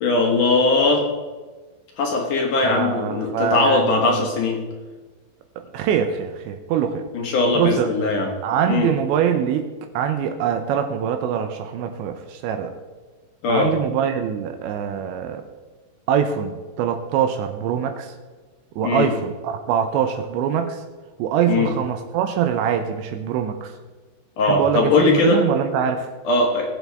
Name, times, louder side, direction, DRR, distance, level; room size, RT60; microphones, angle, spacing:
voice 1, 0.0-1.1 2.0-4.6 7.1-8.3 8.7-8.9 13.4-13.7 18.8-19.1 21.5-21.7 24.4-25.4 26.2-26.7, left 3 dB, 60° left, 1 dB, 2.3 m, -20 dB
voice 2, 2.6-4.3 5.7-7.1 7.6-7.9 8.4-12.7 13.5-15.4 16.1-18.1 18.8-20.8 21.2-23.7 24.4-26.1, right 8 dB, 80° right, 6 dB, 3.0 m, -23 dB
19.0 x 7.9 x 3.4 m, 1.3 s
omnidirectional pair, 5.3 m